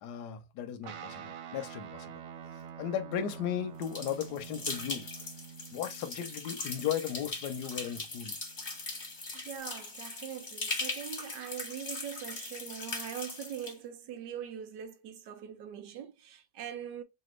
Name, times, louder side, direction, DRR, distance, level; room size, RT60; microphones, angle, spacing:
voice 1, 0.0-2.1 2.8-5.1 5.7-8.3, left 9 dB, 65° left, 1.2 m, -36 dB
Guitar, 0.8-9.6, right 7 dB, 90° right, 1.6 m, -48 dB
sound 1, 3.8-13.7, left 3 dB, 30° left, 1.0 m, -40 dB
voice 2, 9.3-17.0, right 9 dB, 70° right, 1.2 m, -42 dB
3.3 x 2.8 x 3.1 m
omnidirectional pair, 2.2 m